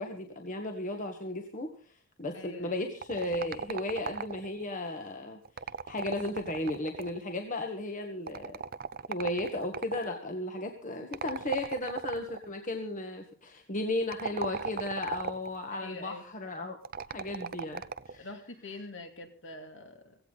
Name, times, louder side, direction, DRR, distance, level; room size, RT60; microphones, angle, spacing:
voice 1, 0.0-1.9 2.2-5.4 5.9-8.6 9.1-16.8 17.1-18.3, left 1 dB, 40° left, 4 dB, 1.6 m, -35 dB
voice 2, 2.3-2.8 15.7-16.3 18.2-20.2, left 2 dB, 60° left, 5 dB, 2.9 m, -45 dB
sound 1, 3.0-4.6 5.4-7.3 8.3-10.1 11.1-12.4 14.0-15.6 16.8-18.2, right 5 dB, 45° right, 0.6 m, -37 dB
16.5 x 16.5 x 4.1 m, 0.39 s
head